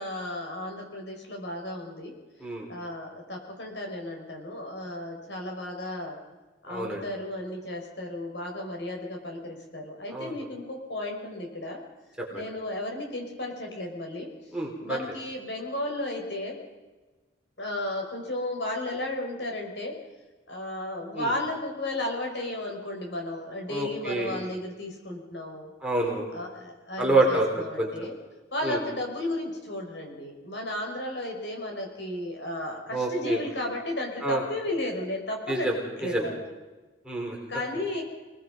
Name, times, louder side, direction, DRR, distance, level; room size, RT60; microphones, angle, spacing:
voice 1, 0.0-2.1 2.7-6.2 6.6-11.8 12.3-14.3 14.8-16.6 17.6-20.0 20.5-25.7 26.3-28.1 28.5-35.7 36.0-36.4 37.5-38.0, left 1 dB, 70° left, 2 dB, 5.7 m, -34 dB
voice 2, 6.7-7.0 10.1-10.4 12.2-12.4 14.5-15.0 21.1-21.3 23.7-24.4 25.8-26.3 27.0-27.9 28.6-28.8 32.9-33.4 34.2-34.4 35.5-36.2 37.0-37.4, right 2 dB, 5° right, -2 dB, 4.5 m, -27 dB
28.0 x 19.5 x 5.4 m, 1.2 s
head